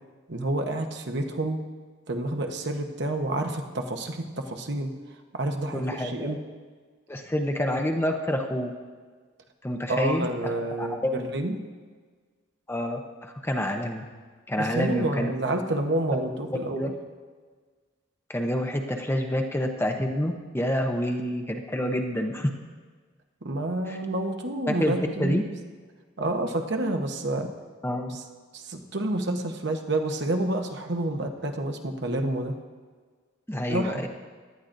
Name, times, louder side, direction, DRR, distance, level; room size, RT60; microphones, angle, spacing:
voice 1, 0.3-1.6 2.1-4.9 5.3-6.4 9.9-11.6 14.6-16.9 23.4-25.5 26.2-27.5 28.1-28.2 28.5-32.5 33.7-34.1, right 1 dB, 60° right, 4 dB, 1.0 m, -29 dB
voice 2, 5.7-6.4 7.1-8.7 9.6-10.3 10.8-11.2 12.7-14.0 14.5-15.6 16.5-16.9 18.3-22.5 23.9-24.0 24.7-25.4 27.8-28.2 33.5-34.1, left 1 dB, 10° left, 4 dB, 0.7 m, -28 dB
17.5 x 11.5 x 2.6 m, 1.5 s
head